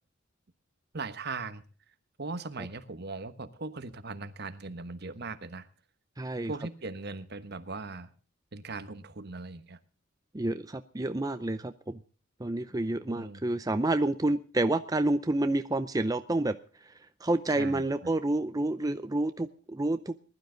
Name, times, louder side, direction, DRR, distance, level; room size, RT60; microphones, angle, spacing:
voice 1, 0.9-1.6 2.2-5.7 6.5-8.1 8.5-9.8 13.1-13.4 17.5-18.1, right 3 dB, 55° right, 1.2 m, -39 dB
voice 2, 6.2-6.5 10.3-12.0 12.4-16.9 17.2-20.1, right 2 dB, 20° right, 0.6 m, -29 dB
20.5 x 12.0 x 3.9 m
head